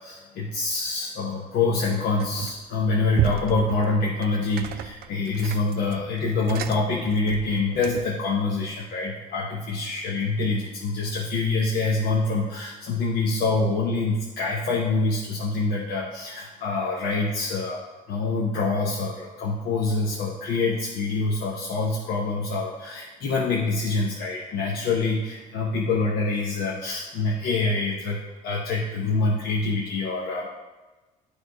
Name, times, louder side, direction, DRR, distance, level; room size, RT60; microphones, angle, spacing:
voice 1, 0.0-17.8 18.1-30.5, left 3 dB, 70° left, -3 dB, 1.0 m, -26 dB
sound 1, 2.2-2.7 3.1-8.2, right 11 dB, 65° right, 0.4 m, -34 dB
9.5 x 3.5 x 4.7 m, 1.2 s
cardioid pair, 110°, 17 cm